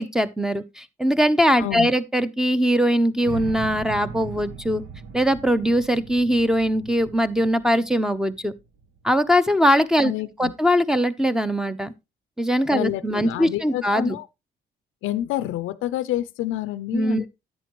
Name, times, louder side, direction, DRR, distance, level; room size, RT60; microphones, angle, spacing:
voice 1, 0.0-4.8 5.1-8.5 9.0-10.1 10.4-11.9 12.4-14.1 16.9-17.3, equal, 5° right, 0.8 m, -21 dB
voice 2, 1.6-1.9 10.0-10.5 12.7-14.3 15.0-17.3, left 14 dB, 90° left, 0.5 m, -28 dB
sound 1, 3.2-9.3, right 5 dB, 70° right, 1.3 m, -39 dB
10.5 x 8.3 x 3.0 m
cardioid pair, 90°, 20 cm